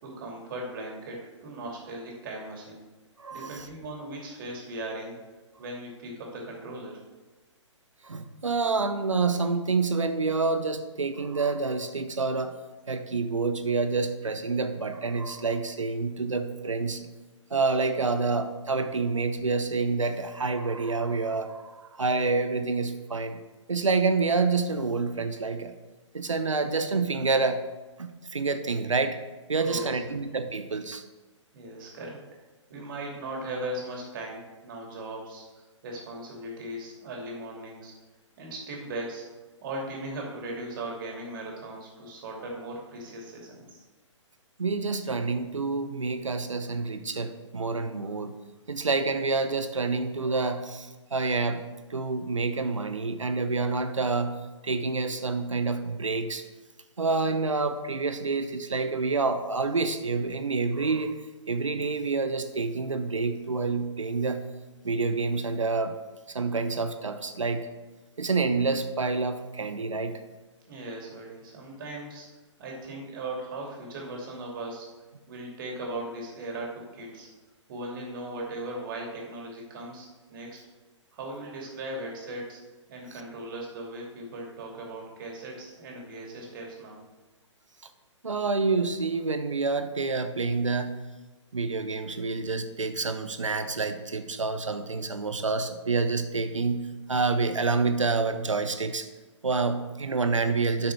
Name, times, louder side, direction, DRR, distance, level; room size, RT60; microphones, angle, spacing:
voice 1, 0.0-2.8 3.3-5.2 5.6-7.0 29.5-30.1 31.5-32.2 32.7-37.9 38.4-39.3 39.6-43.8 70.7-72.3 72.6-74.9 75.3-77.3 77.7-80.6 81.1-82.6 82.9-87.0, right 1 dB, 45° right, -1 dB, 2.7 m, -38 dB
voice 2, 3.2-3.7 8.0-12.6 12.9-17.1 17.5-23.4 23.7-25.7 26.1-27.6 28.0-29.2 29.5-31.0 44.6-48.3 48.7-56.4 57.0-61.2 61.5-64.5 64.8-66.0 66.3-67.7 68.2-70.2 88.2-91.0 91.5-99.1 99.4-100.9, right 4 dB, 80° right, 9 dB, 0.9 m, -28 dB
8.8 x 6.0 x 4.7 m, 1.2 s
figure-of-eight pair, 125°, 16 cm